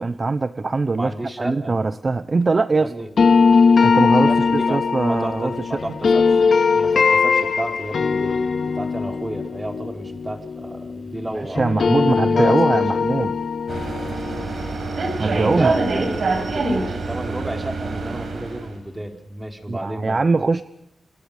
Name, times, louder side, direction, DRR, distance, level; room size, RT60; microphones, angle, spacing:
voice 1, 0.0-2.9 3.8-4.3 4.7-5.8 11.6-13.3 15.2-15.7 19.7-20.6, right 3 dB, 35° right, 12 dB, 0.9 m, -21 dB
voice 2, 0.9-1.8 2.7-3.1 4.2-6.4 6.7-13.0 15.3-20.2, right 1 dB, 15° right, 5 dB, 4.3 m, -32 dB
sound 1, 3.2-11.3 11.6-16.5, left 5 dB, 65° left, 2.9 m, -20 dB
sound 2, 13.7-18.7, right 3 dB, 65° right, 6.3 m, -25 dB
29.5 x 28.5 x 5.1 m, 0.74 s
wide cardioid pair, 130°, 0 cm